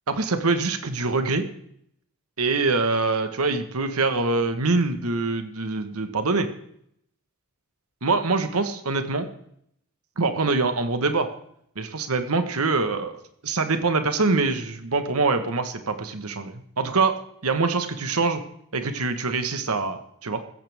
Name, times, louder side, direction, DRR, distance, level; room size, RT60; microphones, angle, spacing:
voice 1, 0.1-1.4 2.4-6.5 8.0-9.3 10.2-11.3 11.7-18.4 18.7-20.4, right 3 dB, 80° right, 8 dB, 1.4 m, -24 dB
15.5 x 14.5 x 3.6 m, 0.70 s
head